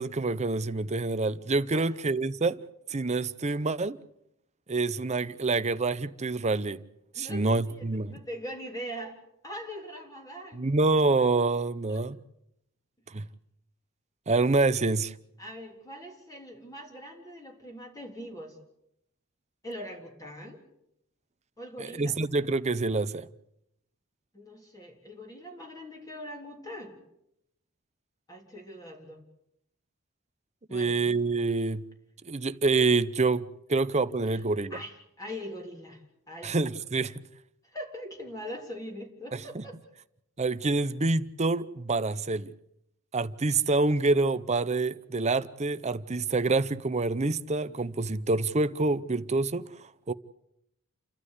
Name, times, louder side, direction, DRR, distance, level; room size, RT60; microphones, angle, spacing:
voice 1, 0.0-2.6 2.9-4.0 4.7-6.8 7.2-8.2 10.6-12.2 13.1-13.2 14.3-15.1 21.8-23.3 30.7-31.8 32.2-34.8 36.4-37.2 39.3-39.6 40.4-42.5 43.1-50.1, right 3 dB, 30° right, 0.8 m, -27 dB
voice 2, 7.1-9.2 9.4-10.7 11.9-12.0 15.4-18.6 19.6-20.6 21.6-22.2 24.3-27.0 28.3-29.2 30.7-31.2 34.3-34.4 34.7-36.0 36.3-36.5 37.7-39.8, equal, 15° left, 3.4 m, -42 dB
29.5 x 12.5 x 8.2 m
head